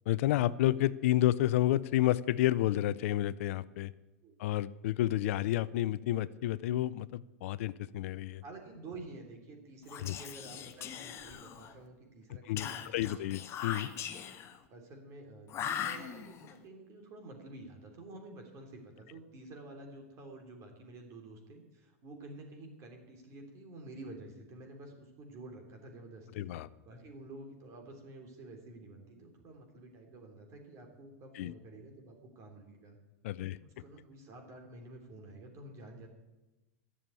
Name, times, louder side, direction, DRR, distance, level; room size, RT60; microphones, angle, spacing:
voice 1, 0.1-3.9 4.4-8.4 10.0-10.1 12.5-13.9 26.4-26.7 31.4-31.5 33.2-33.6, left 14 dB, 65° left, 18 dB, 0.5 m, -30 dB
voice 2, 8.4-13.1 14.7-26.5 26.8-33.0 33.4-36.1, right 2 dB, 40° right, 3 dB, 3.3 m, -50 dB
Whispering, 9.8-11.8 12.6-14.6 15.5-16.5, left 9 dB, 35° left, 1.1 m, -40 dB
11.0 x 7.0 x 9.0 m, 1.1 s
hypercardioid pair, 115°, 8 cm